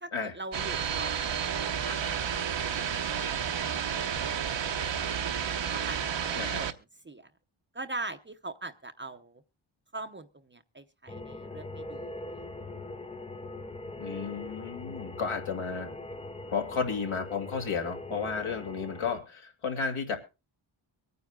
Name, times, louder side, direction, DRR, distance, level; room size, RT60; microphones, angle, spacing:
voice 1, 0.0-3.4 3.9-6.7 7.0-7.3 7.7-9.4 9.9-12.4, right 2 dB, 25° right, 8 dB, 0.8 m, -43 dB
sound 1, 0.5-6.7, right 8 dB, 60° right, 1.0 m, -31 dB
sound 2, 11.1-19.2, left 2 dB, 15° left, 0.5 m, -41 dB
voice 2, 14.0-15.9 16.5-20.2, left 5 dB, 75° left, 2 dB, 2.4 m, -33 dB
24.0 x 9.4 x 2.4 m, 0.28 s
wide cardioid pair, 100°, 50 cm